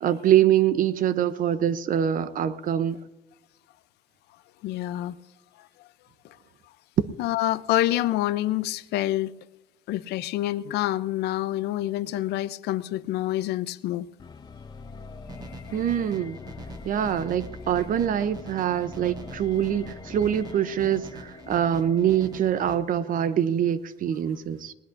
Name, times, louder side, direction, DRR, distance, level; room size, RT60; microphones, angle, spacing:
voice 1, 0.0-3.0 7.0-7.1 15.7-16.4 16.8-24.7, right 10 dB, 55° right, 0.7 m, -24 dB
voice 2, 4.6-5.1 5.6-5.7 7.2-9.3 9.9-14.1 15.4-15.8 17.0-17.1, left 14 dB, 75° left, 0.5 m, -27 dB
sound 1, 14.2-23.2, left 4 dB, 25° left, 0.7 m, -44 dB
sound 2, 15.3-22.8, right 3 dB, 25° right, 1.1 m, -44 dB
19.0 x 19.0 x 2.6 m
cardioid pair, 110°, 17 cm